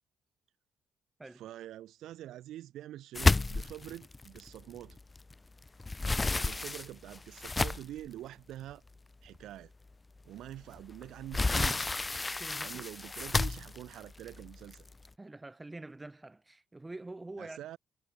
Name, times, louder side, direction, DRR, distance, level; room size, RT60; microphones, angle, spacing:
voice 1, 1.3-5.0 6.2-8.8 9.2-9.7 10.2-11.9 12.6-14.9 17.4-17.8, right 13 dB, 80° right, 3.8 m, -45 dB
sound 1, 3.1-5.3 5.7-8.1 8.7-8.8 9.3-9.4 10.8-15.1, left 3 dB, 20° left, 2.4 m, -31 dB
voice 2, 12.4-12.9 15.2-17.6, right 2 dB, 15° right, 6.4 m, -46 dB
cardioid pair, 90°, 0 cm